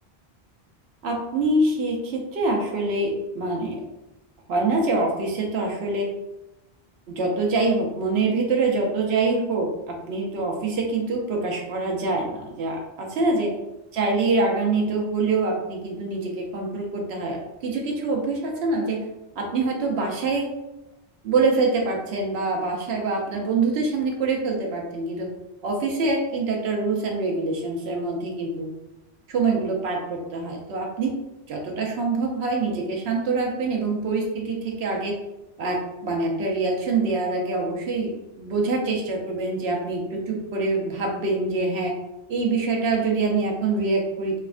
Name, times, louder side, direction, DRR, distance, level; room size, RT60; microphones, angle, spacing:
voice 1, 1.0-3.8 4.5-6.1 7.1-13.5 13.9-17.4 17.6-19.0 19.4-20.5 21.2-25.3 25.6-28.7 29.3-31.1 31.5-35.2 35.6-41.9 42.3-44.4, right 3 dB, 85° right, 0 dB, 0.9 m, -25 dB
3.4 x 2.0 x 2.3 m, 0.93 s
omnidirectional pair, 1.1 m